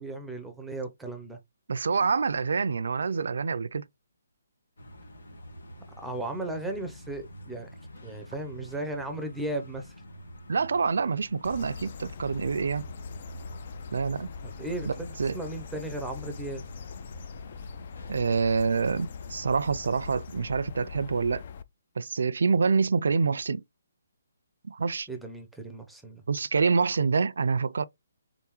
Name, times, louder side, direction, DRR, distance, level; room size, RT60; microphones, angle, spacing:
voice 1, 0.0-1.4 6.0-7.7 8.0-9.9 14.4-15.1 15.3-16.6 25.1-26.2, right 2 dB, ahead, 0.6 m, -36 dB
voice 2, 1.7-3.8 10.5-12.8 13.9-14.3 14.9-15.4 18.1-21.4 22.0-23.6 24.6-25.1 26.3-27.8, right 5 dB, 75° right, 0.4 m, -26 dB
sound 1, 4.8-19.5, equal, 85° left, 1.6 m, -47 dB
sound 2, 11.4-21.6, left 6 dB, 45° left, 0.3 m, -42 dB
3.8 x 3.5 x 3.0 m
hypercardioid pair, 160°, 0 cm